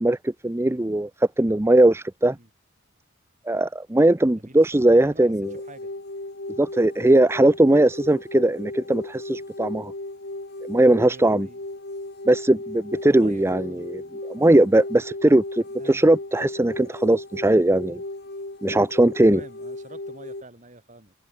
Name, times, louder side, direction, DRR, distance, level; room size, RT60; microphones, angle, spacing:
voice 1, 0.0-2.4 3.5-5.5 6.6-9.9 10.7-11.5 12.3-14.0 14.3-18.0 18.6-19.4, right 1 dB, 15° right, 0.6 m, -19 dB
voice 2, 4.4-5.2 5.5-5.9 11.0-11.6 13.2-13.9 15.8-16.1 19.3-21.1, right 1 dB, 35° right, 6.3 m, -46 dB
sound 1, 5.4-20.4, left 2 dB, 55° left, 2.5 m, -36 dB
head